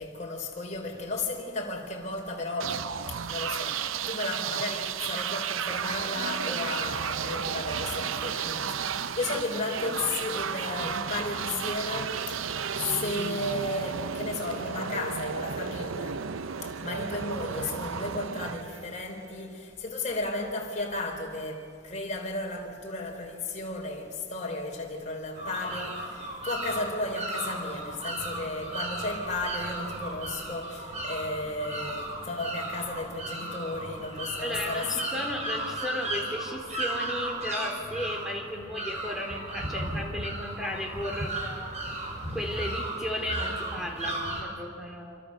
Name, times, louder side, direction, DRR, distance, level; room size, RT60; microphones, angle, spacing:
voice 1, 0.0-16.2 16.6-34.9 43.7-43.8, left 2 dB, 35° left, 3.9 m, -34 dB
sound 1, 2.6-19.3, right 7 dB, 85° right, 0.7 m, -33 dB
sound 2, 25.3-44.4, right 1 dB, 35° right, 4.5 m, -35 dB
voice 2, 34.4-41.7 42.3-45.2, left 1 dB, ahead, 3.4 m, -35 dB
27.0 x 25.5 x 6.6 m
head